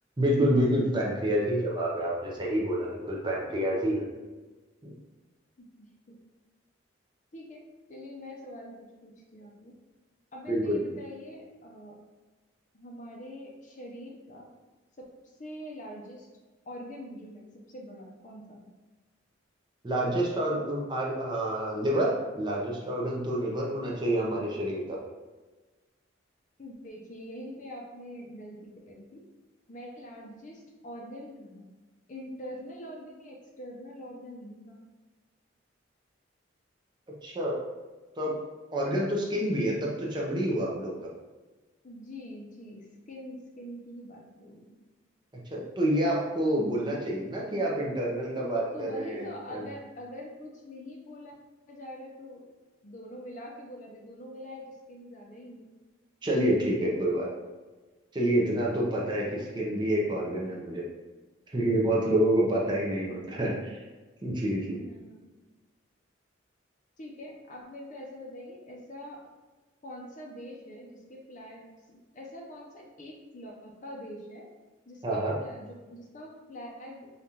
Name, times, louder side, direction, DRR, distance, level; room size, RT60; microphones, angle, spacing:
voice 1, 0.2-4.1 4.8-4.9 10.5-10.8 19.8-25.0 37.2-37.6 38.2-38.3 38.7-41.1 45.5-49.6 56.2-57.3 58.1-60.8 61.5-63.8 64.2-64.8 75.0-75.3, right 1 dB, 25° right, -3 dB, 0.6 m, -28 dB
voice 2, 5.6-6.2 7.3-9.7 10.3-12.0 12.7-14.5 15.0-16.3 16.7-18.7 26.6-29.2 29.7-31.7 32.1-34.8 41.8-44.8 48.7-51.3 51.7-52.4 52.8-55.7 59.2-59.4 60.5-60.6 63.1-63.6 64.7-65.2 67.0-69.2 69.8-74.5 74.9-77.1, equal, 40° left, 0 dB, 0.6 m, -44 dB
5.2 x 2.4 x 2.8 m, 1.3 s
head